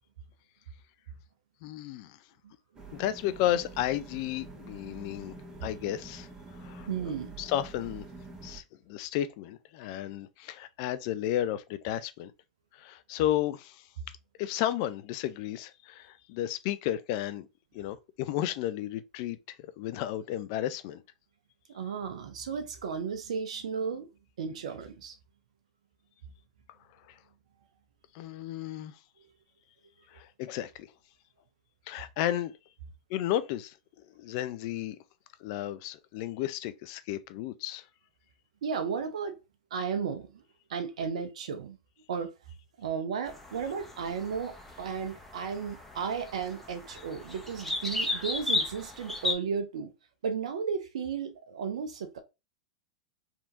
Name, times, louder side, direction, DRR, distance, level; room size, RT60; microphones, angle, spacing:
voice 1, 1.6-2.2 2.9-5.4 5.6-6.3 6.6-8.1 8.4-12.3 12.7-13.9 14.4-17.5 17.7-21.0 27.1-27.2 28.1-28.9 30.1-30.9 31.9-32.5 33.1-33.8 34.2-35.0 35.4-37.8, left 12 dB, 55° left, 0.5 m, -33 dB
sound 1, 2.7-8.6, right 3 dB, 25° right, 1.3 m, -46 dB
voice 2, 6.9-7.3 21.7-24.1 24.4-25.1 38.6-39.4 39.7-40.4 40.7-41.8 42.1-42.3 42.8-49.9 50.2-52.2, right 6 dB, 75° right, 0.7 m, -34 dB
sound 2, 43.3-49.3, left 2 dB, 5° left, 1.0 m, -35 dB
3.4 x 2.9 x 2.5 m
hypercardioid pair, 100°, 4 cm